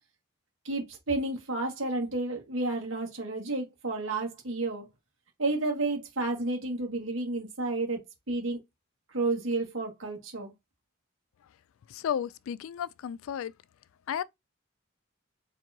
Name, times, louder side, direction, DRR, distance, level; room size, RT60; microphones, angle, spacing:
voice 1, 0.6-4.9 5.4-8.6 9.1-10.5, right 2 dB, 70° right, 1.9 m, -31 dB
voice 2, 11.9-13.5 14.1-14.2, left 9 dB, 80° left, 0.3 m, -33 dB
4.5 x 3.5 x 2.7 m
head